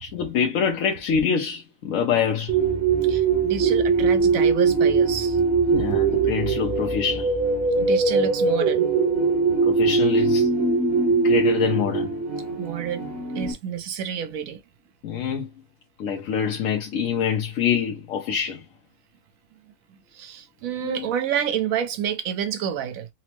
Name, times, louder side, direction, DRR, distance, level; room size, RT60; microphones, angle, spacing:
voice 1, 0.0-2.5 5.7-7.3 9.6-10.5 11.2-12.1 15.0-15.5 16.0-18.6 20.8-21.1, left 7 dB, 80° left, 1.1 m, -25 dB
sound 1, 2.5-13.5, right 4 dB, 50° right, 1.1 m, -21 dB
voice 2, 3.0-5.4 5.9-6.0 7.8-8.9 12.6-13.1 13.3-14.6 20.1-23.1, right 9 dB, 85° right, 1.1 m, -29 dB
4.3 x 2.0 x 2.9 m
omnidirectional pair, 1.4 m